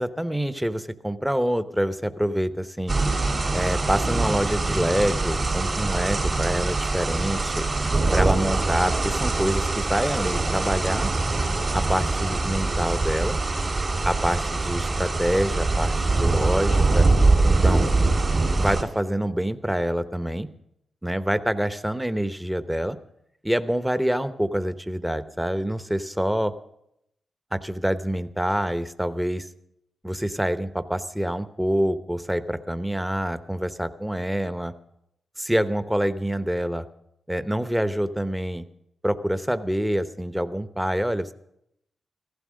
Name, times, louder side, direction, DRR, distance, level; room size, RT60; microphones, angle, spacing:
voice 1, 0.0-2.9 3.5-7.7 8.1-11.1 11.7-13.4 14.0-17.1 17.5-17.9 18.6-20.5 21.0-23.0 23.4-26.5 27.5-29.5 30.0-34.7 35.4-36.8 37.3-38.7 39.0-41.3, equal, 5° right, 12 dB, 0.9 m, -26 dB
sound 1, 2.9-18.8, right 3 dB, 45° right, 3.7 m, -23 dB
15.0 x 11.5 x 6.3 m, 0.79 s
supercardioid pair, 50°, 0 cm